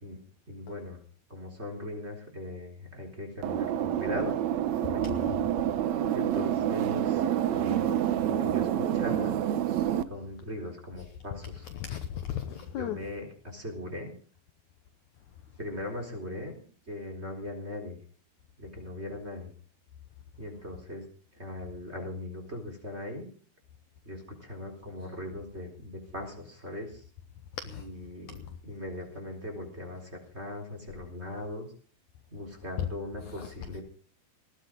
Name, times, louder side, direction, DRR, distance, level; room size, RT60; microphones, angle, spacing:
voice 1, 0.5-1.0 1.3-4.4 4.8-5.0 6.1-7.2 7.5-11.7 12.4-14.1 15.6-16.5 16.9-18.0 18.6-19.5 20.4-21.0 21.4-23.3 24.0-27.0 27.6-31.7 32.3-33.8, left 1 dB, 15° right, 3.9 m, -39 dB
sound 1, 3.4-10.0, right 10 dB, 85° right, 1.5 m, -28 dB
voice 2, 5.0-5.4 11.7-13.0 27.7-27.8 32.8-32.9 33.4-33.5, left 10 dB, 75° left, 1.8 m, -35 dB
19.5 x 14.5 x 3.8 m
omnidirectional pair, 4.5 m